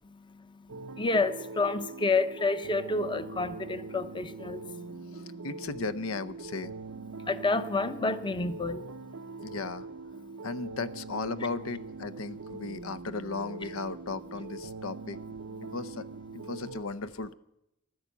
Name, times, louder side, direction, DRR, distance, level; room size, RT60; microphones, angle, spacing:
voice 1, 0.1-5.5 7.1-9.6 10.2-10.5 15.6-15.7, left 3 dB, 25° left, 0.7 m, -31 dB
sound 1, 0.7-16.8, right 3 dB, 75° right, 0.5 m, -42 dB
voice 2, 5.1-6.7 9.4-9.9 10.4-15.2 15.7-16.1 16.3-17.3, left 3 dB, 85° left, 0.7 m, -36 dB
15.0 x 11.0 x 8.2 m
head